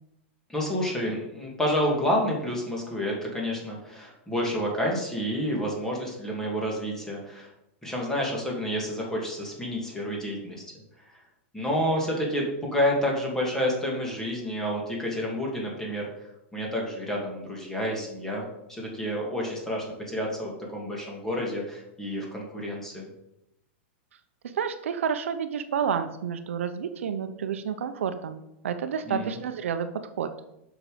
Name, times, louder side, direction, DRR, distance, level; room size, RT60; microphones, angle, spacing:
voice 1, 0.5-7.5 7.8-10.6 11.5-16.1 16.5-23.1 29.1-29.4, equal, 5° left, -2 dB, 2.6 m, -29 dB
voice 2, 24.5-29.9 30.2-30.3, right 7 dB, 85° right, 9 dB, 0.8 m, -30 dB
7.5 x 6.1 x 5.1 m, 0.85 s
supercardioid pair, 140°, 7 cm